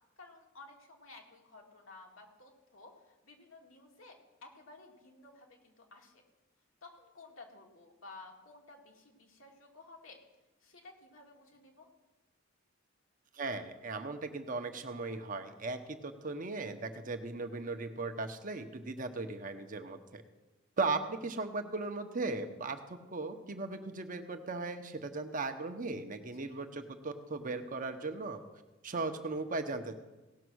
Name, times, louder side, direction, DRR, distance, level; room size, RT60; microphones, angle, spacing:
voice 1, 0.2-6.2 6.8-10.2 10.6-11.9 26.4-26.6, left 3 dB, 75° left, 1 dB, 2.3 m, -54 dB
voice 2, 13.3-20.2 20.8-28.4 28.8-30.0, right 3 dB, 40° right, 7 dB, 0.9 m, -37 dB
17.0 x 6.1 x 6.2 m, 1.1 s
head